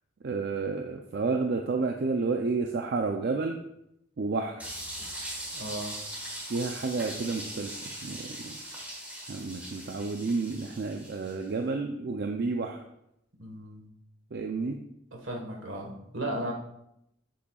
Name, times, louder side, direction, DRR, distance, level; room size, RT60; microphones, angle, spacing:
voice 1, 0.2-3.6 4.2-4.7 6.5-7.8 8.0-8.6 9.3-12.8 14.3-14.8, right 4 dB, 55° right, 3 dB, 0.4 m, -30 dB
sound 1, 4.6-11.4, right 1 dB, 5° right, 1.5 m, -40 dB
voice 2, 5.5-6.0 13.4-13.8 15.2-16.5, right 1 dB, 75° right, 2 dB, 1.4 m, -35 dB
7.7 x 6.8 x 2.3 m, 0.81 s
head